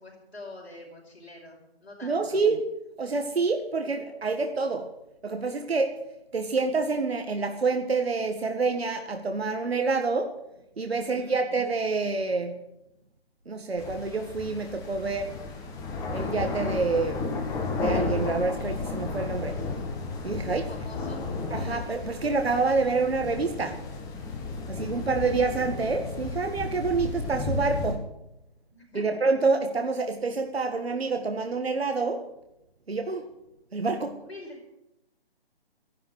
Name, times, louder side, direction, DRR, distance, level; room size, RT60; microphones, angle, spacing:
voice 1, 0.0-2.4 11.0-11.5 20.5-21.3 28.7-29.2 34.2-34.6, left 2 dB, 85° left, -1 dB, 5.3 m, -45 dB
voice 2, 2.0-2.7 3.0-4.9 5.2-6.0 6.3-10.3 10.8-12.6 13.5-15.3 16.1-17.2 17.8-19.6 20.2-20.7 21.5-23.8 24.7-28.1 28.9-32.3 32.9-33.2 33.7-34.2, right 4 dB, 75° right, 5 dB, 1.9 m, -27 dB
sound 1, 13.8-27.9, left 3 dB, 10° left, 1.7 m, -33 dB
14.0 x 11.5 x 8.0 m, 0.85 s
figure-of-eight pair, 145°, 31 cm